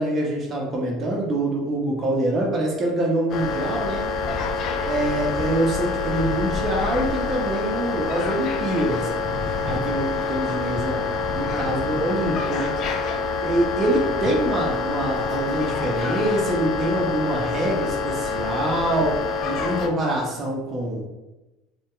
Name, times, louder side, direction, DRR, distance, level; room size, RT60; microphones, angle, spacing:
voice 1, 0.0-4.0 4.8-9.1 9.6-11.0 11.3-12.7 13.4-19.2 19.4-21.0, right 1 dB, 35° right, -2 dB, 0.6 m, -25 dB
sound 1, 3.3-19.9, left 4 dB, 50° left, 0.3 m, -26 dB
2.7 x 2.1 x 2.2 m, 1.0 s
hypercardioid pair, 80°, 0 cm